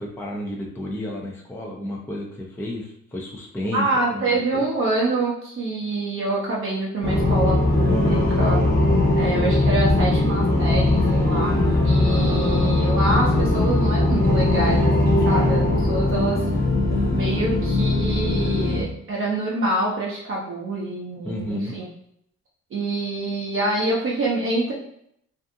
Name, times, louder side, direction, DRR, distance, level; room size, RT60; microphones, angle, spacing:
voice 1, 0.0-3.9 4.1-4.6 21.2-21.7, equal, 5° left, -2 dB, 0.4 m, -31 dB
voice 2, 3.7-8.6 9.1-11.6 11.8-16.4 17.1-21.8 22.7-24.7, right 2 dB, 45° right, -5 dB, 0.7 m, -26 dB
sound 1, 7.0-18.8, left 2 dB, 30° left, 0.8 m, -20 dB
2.6 x 2.4 x 2.6 m, 0.71 s
cardioid pair, 90°, 30 cm